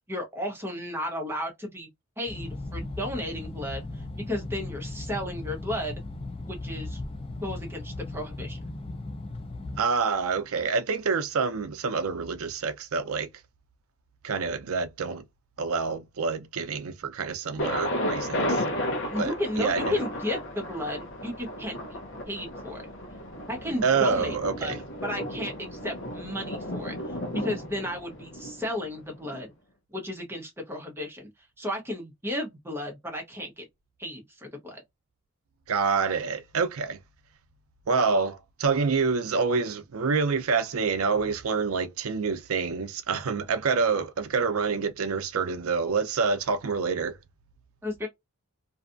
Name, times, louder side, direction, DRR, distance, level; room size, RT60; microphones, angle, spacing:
voice 1, 0.1-1.9 2.2-5.9 6.4-7.0 7.4-8.6 19.1-22.0 22.3-22.8 23.5-24.7 25.0-29.5 29.9-31.3 31.6-33.6 34.0-34.8 47.8-48.1, left 1 dB, 10° right, 0.8 m, -34 dB
sound 1, 2.3-9.8, left 2 dB, 25° left, 0.3 m, -37 dB
voice 2, 9.8-13.3 14.2-15.2 15.6-18.6 19.2-20.0 23.8-24.8 35.7-37.0 37.9-47.2, right 5 dB, 75° right, 0.5 m, -27 dB
Thunder, 17.6-29.4, left 1 dB, 55° left, 0.8 m, -33 dB
2.6 x 2.4 x 2.4 m
head